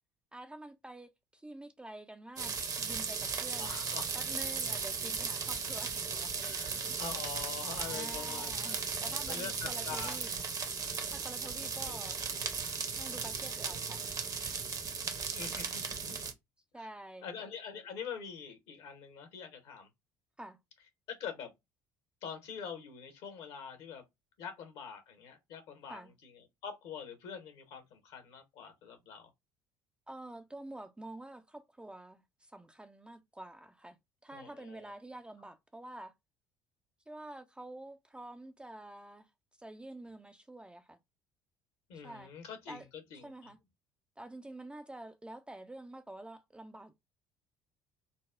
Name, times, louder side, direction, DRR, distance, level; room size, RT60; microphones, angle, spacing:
voice 1, 0.3-3.7 4.1-7.0 7.8-10.3 11.1-12.4 13.0-14.6 16.7-17.2 20.4-20.6 25.9-26.1 30.1-34.0 34.2-36.1 37.1-39.3 39.6-41.0 41.9-42.3 42.7-42.9 43.2-43.6 44.2-46.9, right 1 dB, 10° right, 0.4 m, -48 dB
sound 1, 2.4-16.3, right 5 dB, 35° right, 0.8 m, -36 dB
voice 2, 3.6-4.1 6.4-10.2 11.8-12.0 15.3-16.2 16.7-16.9 17.2-19.9 21.1-21.5 22.2-24.0 24.4-29.3 34.3-34.9 41.9-42.8 43.1-43.5, left 6 dB, 60° left, 1.1 m, -45 dB
4.0 x 2.0 x 2.4 m
figure-of-eight pair, 55°, 10 cm